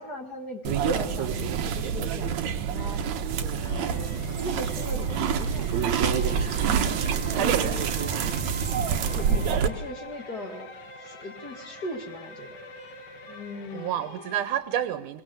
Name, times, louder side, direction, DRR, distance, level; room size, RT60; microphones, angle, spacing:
voice 1, 0.0-2.3 2.7-3.0 3.6-6.1 7.3-7.8 9.1-10.7 11.0-12.6 13.3-14.0, left 2 dB, 35° left, 4 dB, 2.1 m, -38 dB
sound 1, 0.6-9.7, right 7 dB, 70° right, 2.5 m, -27 dB
sound 2, 3.6-14.5, left 5 dB, 55° left, 2.6 m, -47 dB
Wind instrument woodwind instrument, 6.1-13.7, equal, 5° left, 2.4 m, -45 dB
voice 2, 7.3-7.8 13.7-15.2, right 11 dB, 90° right, 11 dB, 2.5 m, -29 dB
23.0 x 20.5 x 8.0 m, 0.81 s
omnidirectional pair, 3.5 m